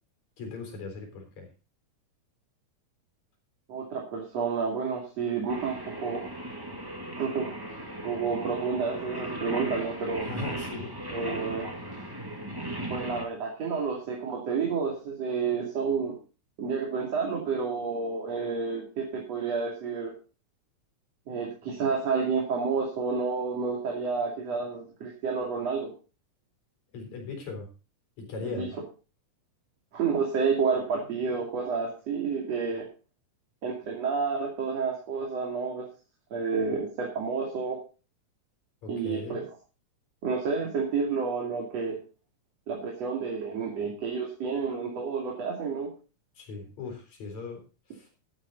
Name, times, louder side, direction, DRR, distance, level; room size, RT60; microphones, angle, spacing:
voice 1, 0.4-1.5 10.2-10.9 26.9-27.7 28.2-28.8 38.8-39.4 46.4-47.6 47.9-48.1, left 4 dB, 65° left, 2 dB, 5.3 m, -38 dB
voice 2, 3.7-6.2 7.2-7.5 8.0-10.3 11.1-11.7 12.9-16.2 16.6-20.1 21.3-25.9 28.4-28.7 29.9-32.9 33.6-35.9 36.3-37.8 38.9-39.4 40.2-42.0 42.7-45.9, right 5 dB, 60° right, -1 dB, 3.7 m, -30 dB
Singing, 5.5-13.2, right 1 dB, 10° right, 1.8 m, -37 dB
13.0 x 10.5 x 4.0 m, 0.34 s
omnidirectional pair, 3.4 m